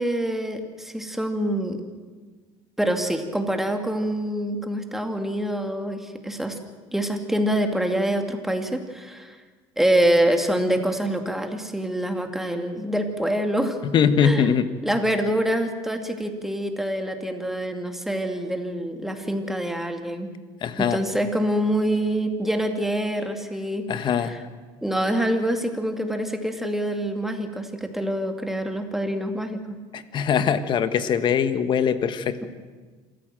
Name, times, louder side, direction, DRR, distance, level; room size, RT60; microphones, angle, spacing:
voice 1, 0.0-1.8 2.8-6.6 6.9-9.4 9.8-13.8 14.2-14.5 14.8-20.3 20.8-24.4 24.8-29.8, right 1 dB, 5° right, 5 dB, 2.3 m, -25 dB
voice 2, 13.8-14.7 20.6-21.0 23.9-24.4 29.9-32.4, left 7 dB, 45° left, 11 dB, 1.4 m, -22 dB
26.0 x 14.5 x 7.7 m, 1.4 s
cardioid pair, 115°, 11 cm